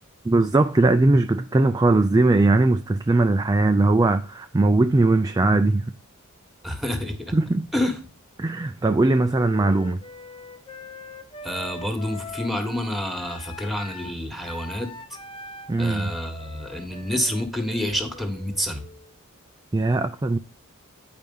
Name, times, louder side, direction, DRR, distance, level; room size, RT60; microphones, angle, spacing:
voice 1, 0.2-5.9 7.3-7.7 8.4-10.0 15.7-16.1 19.7-20.4, right 2 dB, 15° right, 0.3 m, -20 dB
voice 2, 6.6-7.3 7.7-8.0 11.4-14.9 15.8-18.8, left 1 dB, ahead, 1.4 m, -28 dB
Wind instrument woodwind instrument, 9.4-19.2, left 3 dB, 25° left, 0.6 m, -42 dB
9.1 x 4.9 x 5.4 m
head